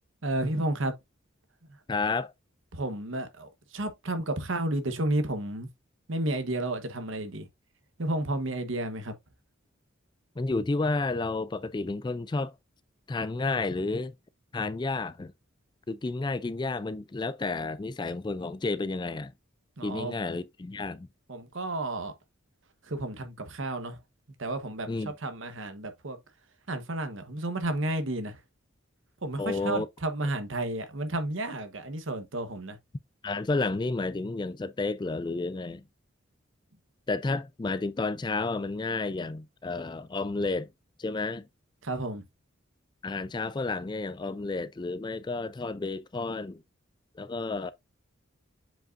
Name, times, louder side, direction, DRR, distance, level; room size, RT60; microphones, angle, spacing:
voice 1, 0.2-0.9 2.7-5.7 6.1-7.5 8.0-9.1 19.8-20.2 21.3-22.1 22.8-24.0 24.4-26.2 26.7-28.4 29.2-32.8 41.8-42.2, right 1 dB, 75° right, 1.2 m, -32 dB
voice 2, 1.9-2.3 10.4-12.5 13.1-14.1 14.5-15.3 15.9-19.3 19.8-21.1 24.9-25.1 29.4-29.9 33.2-35.8 37.1-40.7 41.0-41.5 43.0-46.6 47.2-47.7, left 3 dB, 20° left, 0.3 m, -31 dB
7.6 x 5.0 x 2.6 m
head